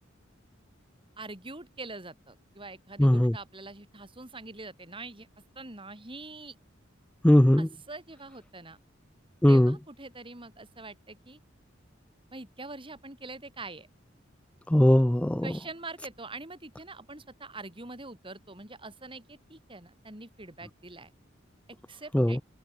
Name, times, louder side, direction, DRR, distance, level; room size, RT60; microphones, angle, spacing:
voice 1, 1.2-5.3 5.6-6.5 7.6-8.8 9.5-11.4 12.3-13.9 15.4-21.1 21.9-22.4, right 3 dB, 25° right, 5.7 m, -44 dB
voice 2, 3.0-3.3 7.2-7.7 9.4-9.8 14.7-15.5 22.1-22.4, left 1 dB, 5° left, 0.5 m, -20 dB
head